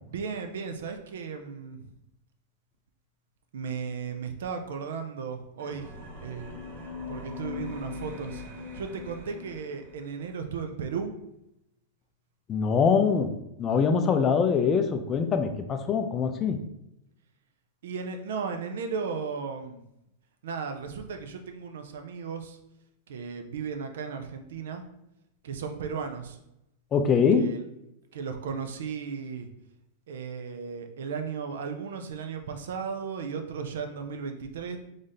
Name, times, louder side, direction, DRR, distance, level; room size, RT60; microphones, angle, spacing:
voice 1, 0.1-1.8 3.5-6.5 7.1-8.4 8.7-11.1 17.8-19.8 20.4-22.6 23.1-24.8 25.4-26.4 27.3-27.6 28.1-29.5 30.1-34.8, right 5 dB, 80° right, 6 dB, 0.5 m, -35 dB
sound 1, 5.6-10.2, left 4 dB, 60° right, 1.1 m, -41 dB
voice 2, 12.5-13.3 13.6-16.6 26.9-27.5, left 6 dB, 25° left, 8 dB, 0.4 m, -23 dB
3.2 x 2.6 x 3.9 m, 0.84 s
supercardioid pair, 135°, 0 cm